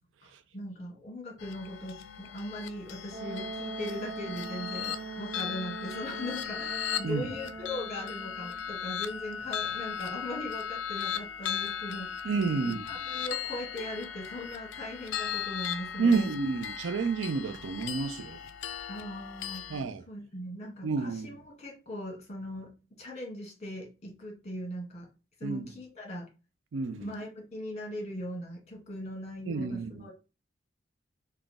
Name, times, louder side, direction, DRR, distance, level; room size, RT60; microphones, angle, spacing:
voice 1, 0.5-12.3 12.5-16.3 18.9-19.7 20.1-22.7 23.0-25.1 25.4-26.3 26.9-30.1, left 1 dB, 35° left, 1.5 m, -39 dB
sound 1, 1.4-19.8, left 9 dB, 75° left, 0.4 m, -37 dB
Wind instrument woodwind instrument, 3.1-8.6, right 4 dB, 10° right, 2.0 m, -42 dB
voice 2, 7.0-7.3 12.2-12.8 16.0-18.4 19.7-20.0 20.8-21.4 25.4-25.7 26.7-27.1 29.5-30.1, right 4 dB, 80° right, 0.4 m, -30 dB
3.5 x 2.3 x 3.9 m
head